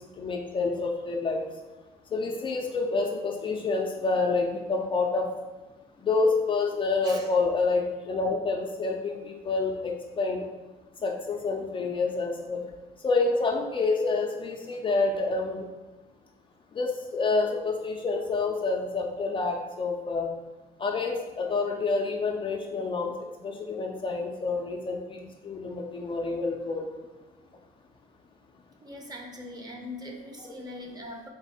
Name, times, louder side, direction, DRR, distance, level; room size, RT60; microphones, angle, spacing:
voice 1, 0.2-1.5 2.1-5.3 6.0-10.4 11.0-12.6 13.0-15.7 16.7-20.3 20.8-23.1 23.4-26.9, left 3 dB, 30° left, 1 dB, 0.4 m, -28 dB
voice 2, 28.8-31.3, left 1 dB, 25° right, 1 dB, 0.7 m, -41 dB
4.0 x 2.5 x 4.2 m, 1.2 s
cardioid pair, 110°, 17 cm